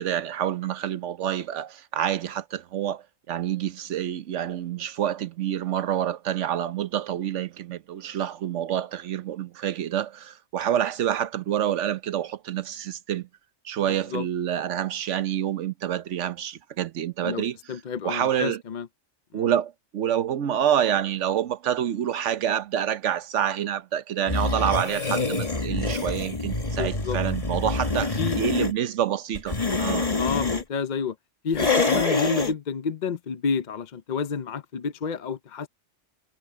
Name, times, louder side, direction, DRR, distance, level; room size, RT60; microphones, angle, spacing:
voice 1, 0.0-13.3 13.6-17.6 18.0-18.6 19.3-30.1, right 10 dB, 70° right, 1.1 m, -27 dB
voice 2, 13.9-14.3 17.2-18.9 19.3-19.5 26.8-27.2 28.2-28.4 30.2-31.2 31.4-35.7, left 6 dB, 45° left, 0.6 m, -30 dB
sound 1, 24.3-28.7 29.3-30.6 31.5-32.5, left 3 dB, 30° left, 1.8 m, -26 dB
omnidirectional pair, 1.3 m